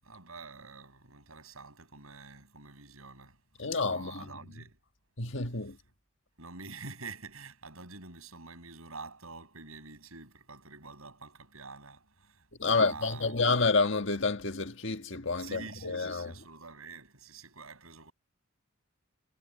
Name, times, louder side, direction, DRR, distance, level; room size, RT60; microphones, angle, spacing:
voice 1, 0.0-4.8 6.4-13.6 15.4-18.1, right 4 dB, 85° right, 7.2 m, -47 dB
voice 2, 3.6-4.3 5.2-5.8 12.6-16.3, left 3 dB, 60° left, 1.7 m, -29 dB
head